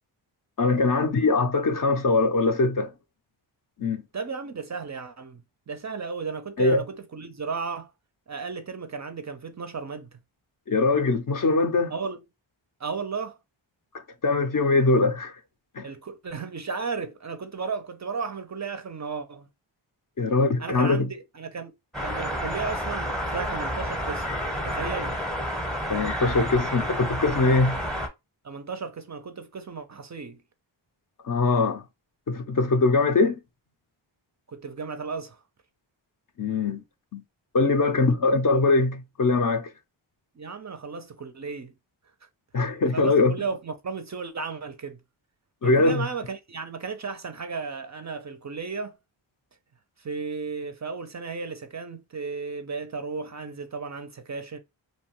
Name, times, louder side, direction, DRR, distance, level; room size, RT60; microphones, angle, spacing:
voice 1, 0.6-2.9 3.8-4.0 6.6-6.8 10.7-11.9 14.2-15.3 15.8-15.9 20.2-21.1 25.9-27.8 31.2-31.8 32.3-33.4 36.4-36.8 37.1-37.2 37.5-39.7 42.5-43.3 45.6-46.0, left 3 dB, 45° left, 0.5 m, -22 dB
voice 2, 4.1-5.4 5.7-7.9 8.3-10.1 11.9-12.2 12.8-13.4 15.8-19.5 20.6-21.7 22.0-24.3 24.6-25.2 28.4-30.4 34.5-35.4 40.4-41.7 42.9-45.0 45.6-49.0 50.0-54.6, right 5 dB, 40° right, 0.4 m, -34 dB
sound 1, 21.9-28.1, equal, ahead, 0.7 m, -30 dB
2.6 x 2.2 x 2.9 m
cardioid pair, 55°, 48 cm